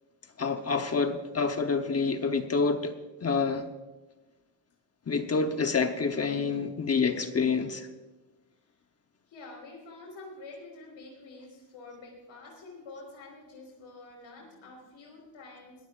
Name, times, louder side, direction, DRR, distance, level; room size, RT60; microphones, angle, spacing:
voice 1, 0.4-2.9 3.2-3.7 5.1-7.9, left 4 dB, 35° left, 7 dB, 0.9 m, -27 dB
voice 2, 9.3-15.8, left 3 dB, 85° left, -1 dB, 4.7 m, -47 dB
21.5 x 14.5 x 2.5 m, 1.2 s
wide cardioid pair, 145°, 46 cm